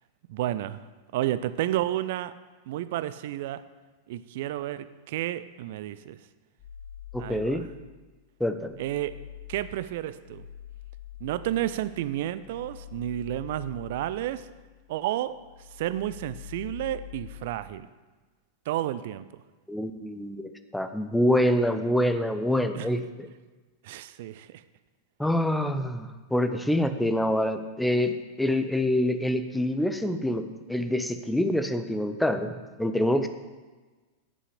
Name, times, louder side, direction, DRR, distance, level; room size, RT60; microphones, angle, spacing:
voice 1, 0.3-0.8 1.1-2.4 2.7-3.6 4.1-6.2 7.2-7.6 8.8-9.2 9.5-10.5 11.2-14.5 14.9-15.4 15.7-17.9 18.7-19.4 22.7-22.9 23.8-24.6, right 13 dB, 55° right, 15 dB, 0.4 m, -31 dB
sound 1, 6.6-8.0 8.4-15.0 15.3-17.6, left 12 dB, 25° left, 3.6 m, -45 dB
voice 2, 7.1-7.6 8.4-8.7 19.7-23.3 25.2-32.5 32.8-33.3, left 1 dB, 5° left, 8 dB, 0.7 m, -26 dB
8.4 x 7.0 x 6.7 m, 1.3 s
figure-of-eight pair, 90°, 0 cm